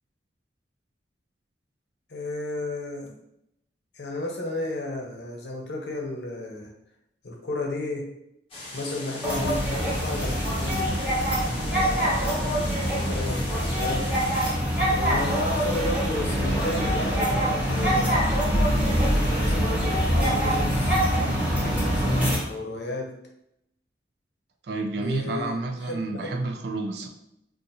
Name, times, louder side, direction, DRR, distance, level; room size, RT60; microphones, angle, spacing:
voice 1, 2.1-3.1 3.9-6.7 7.2-8.1 8.7-10.9 11.5-14.1 14.9-18.4 19.1-21.0 21.6-23.1 24.9-25.6 25.8-26.4, left 2 dB, 75° left, 1 dB, 0.7 m, -33 dB
sound 1, 8.5-14.5, left 2 dB, 30° left, 0.9 m, -40 dB
sound 2, 9.2-22.4, equal, 10° right, 0.8 m, -24 dB
voice 2, 24.7-27.1, right 2 dB, 70° right, 4 dB, 0.5 m, -30 dB
2.5 x 2.5 x 4.0 m, 0.79 s
head